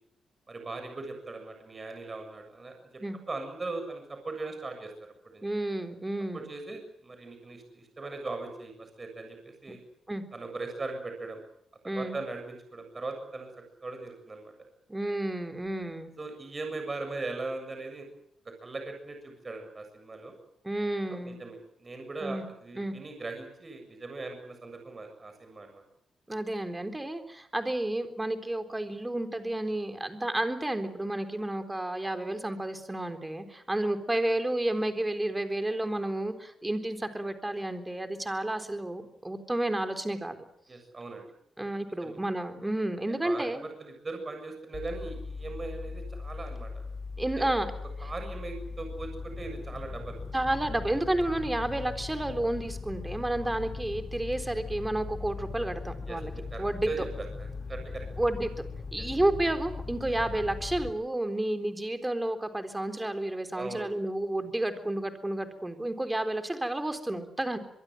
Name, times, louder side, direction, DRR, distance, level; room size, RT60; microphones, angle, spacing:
voice 1, 0.5-2.8 3.3-4.9 5.3-5.4 6.3-9.8 10.3-11.4 11.9-13.5 13.8-14.5 16.2-18.1 18.4-20.3 21.1-25.8 40.7-41.3 42.0-42.2 43.1-46.7 47.4-47.5 48.0-50.2 53.4-53.5 56.1-58.1 63.5-63.9, right 3 dB, 30° right, 5 dB, 7.2 m, -39 dB
voice 2, 5.4-6.5 10.1-10.2 11.8-12.2 14.9-16.1 20.6-21.4 22.2-22.5 22.8-22.9 26.3-40.4 41.6-43.7 47.2-47.7 48.0-48.1 50.3-56.3 56.6-57.1 58.2-67.6, right 1 dB, 10° right, 8 dB, 3.8 m, -31 dB
sound 1, 44.7-60.9, left 4 dB, 40° left, 4.5 m, -39 dB
24.5 x 23.0 x 7.9 m, 0.73 s
cardioid pair, 100°, 0 cm